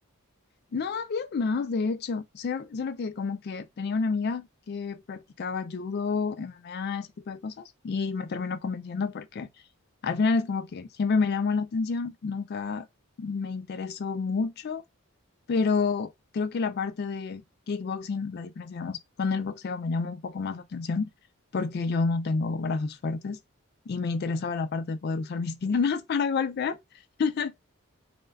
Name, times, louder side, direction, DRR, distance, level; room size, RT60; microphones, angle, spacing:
voice 1, 0.7-9.5 10.0-12.9 13.2-14.8 15.5-21.1 21.5-23.4 23.9-26.8 27.2-27.5, left 4 dB, 45° left, 0.3 m, -29 dB
2.3 x 2.2 x 3.3 m
head